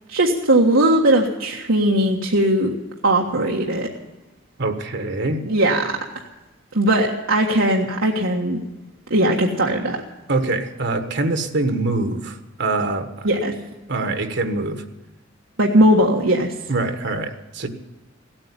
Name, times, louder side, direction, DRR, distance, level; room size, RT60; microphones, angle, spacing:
voice 1, 0.1-2.7 3.0-3.9 5.4-5.9 6.7-8.6 9.1-10.0 13.2-13.5 15.6-16.5, right 1 dB, 90° right, -2 dB, 1.6 m, -18 dB
voice 2, 4.6-5.4 10.3-13.3 13.9-14.8 16.7-17.7, right 2 dB, 60° right, 8 dB, 1.4 m, -24 dB
16.5 x 8.9 x 9.9 m, 1.1 s
head